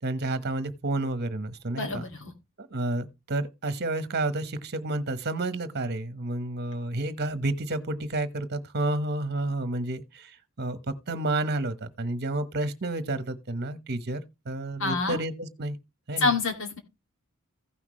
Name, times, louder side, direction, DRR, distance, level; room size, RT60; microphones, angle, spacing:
voice 1, 0.0-2.0 2.6-15.8 16.1-16.3, right 2 dB, 50° right, 1.1 m, -30 dB
voice 2, 1.7-2.3 14.8-15.2 16.2-16.8, left 3 dB, 65° left, 2.3 m, -27 dB
15.5 x 5.9 x 3.1 m
head